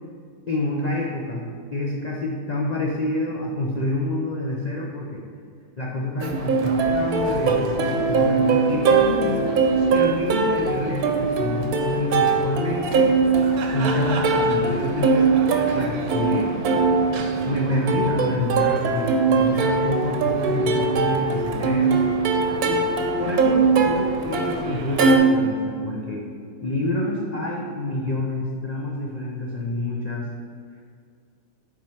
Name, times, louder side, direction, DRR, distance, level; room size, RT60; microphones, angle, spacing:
voice 1, 0.5-5.2 5.8-9.4 9.9-13.1 13.7-15.3 15.7-16.5 17.4-22.0 22.6-22.9 23.2-26.3 26.6-30.3, left 1 dB, 75° left, -3 dB, 0.3 m, -27 dB
Plucked string instrument, 6.2-25.2, right 4 dB, 70° right, 1.1 m, -21 dB
7.5 x 3.8 x 4.5 m, 2.2 s
omnidirectional pair, 1.7 m